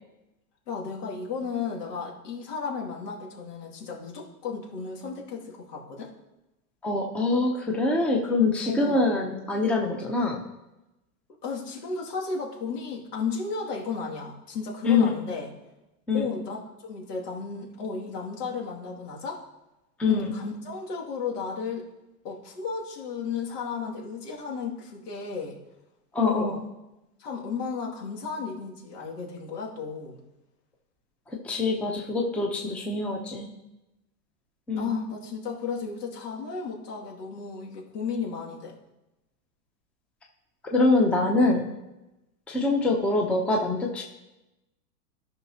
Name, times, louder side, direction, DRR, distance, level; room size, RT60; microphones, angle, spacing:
voice 1, 0.7-6.1 8.6-9.0 11.4-15.5 16.1-19.4 20.1-21.9 22.2-25.6 26.2-26.6 27.2-30.2 34.8-38.8, left 5 dB, 75° left, -2 dB, 2.4 m, -34 dB
voice 2, 6.8-10.4 14.8-15.2 16.1-16.3 20.0-20.3 26.1-26.6 31.4-33.5 34.7-35.0 40.7-41.7 42.5-44.0, left 3 dB, 5° left, 0 dB, 0.6 m, -24 dB
13.5 x 5.8 x 2.8 m, 0.96 s
hypercardioid pair, 130°, 48 cm